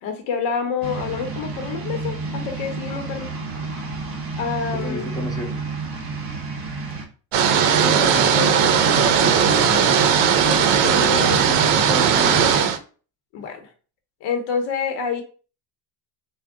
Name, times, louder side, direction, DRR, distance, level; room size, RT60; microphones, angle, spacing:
voice 1, 0.0-3.3 4.4-5.1 7.4-10.1 10.4-11.4 13.3-13.7 14.2-15.2, left 6 dB, 75° left, 4 dB, 0.9 m, -28 dB
sound 1, 0.8-7.0, right 3 dB, 30° right, 0.6 m, -30 dB
voice 2, 4.7-5.6 10.8-12.5, left 3 dB, 10° left, -1 dB, 0.4 m, -31 dB
sound 2, 7.3-12.8, right 7 dB, 80° right, 0.6 m, -17 dB
3.5 x 2.2 x 3.5 m, 0.38 s
cardioid pair, 165°, 43 cm